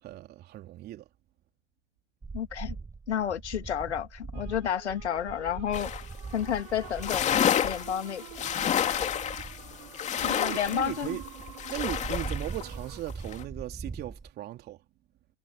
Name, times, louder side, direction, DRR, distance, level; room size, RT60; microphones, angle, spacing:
voice 1, 0.0-1.1 8.5-11.2 11.5-14.8, right 14 dB, 30° right, 3.2 m, -39 dB
sound 1, 2.2-14.3, right 4 dB, 10° right, 4.2 m, -42 dB
voice 2, 2.3-2.8 3.1-5.9 6.3-7.3 7.6-8.2 9.0-9.1 10.2-11.2, left 9 dB, 70° left, 2.3 m, -31 dB
sound 2, 4.3-13.0, right 25 dB, 45° right, 3.8 m, -49 dB
sound 3, 5.7-6.1 6.4-6.5 6.8-12.6 13.1-13.4, left 9 dB, 20° left, 2.5 m, -29 dB
hypercardioid pair, 115°, 35 cm